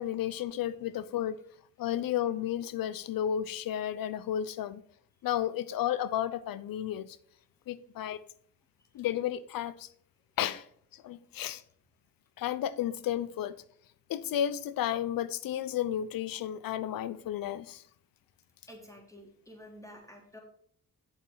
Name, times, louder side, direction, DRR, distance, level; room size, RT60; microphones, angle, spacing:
voice 1, 0.0-1.4 1.8-4.8 5.2-7.1 7.7-8.2 8.9-9.9 10.4-10.6 10.9-11.6 12.4-13.6 14.1-17.8, left 11 dB, 80° left, 0.7 m, -32 dB
voice 2, 18.7-20.4, equal, 10° left, 3.6 m, -50 dB
8.3 x 7.1 x 4.8 m
cardioid pair, 60°, 34 cm